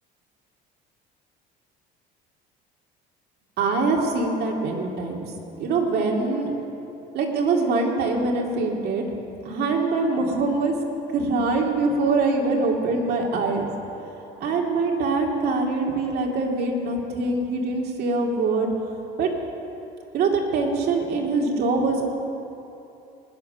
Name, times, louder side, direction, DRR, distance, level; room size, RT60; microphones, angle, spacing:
voice 1, 3.6-5.3 5.6-6.5 7.1-9.1 9.4-10.7 11.1-13.7 14.4-18.7 19.2-19.3 20.1-22.1, right 3 dB, 60° right, 1 dB, 2.5 m, -23 dB
20.0 x 9.5 x 6.7 m, 2.9 s
cardioid pair, 125°, 19 cm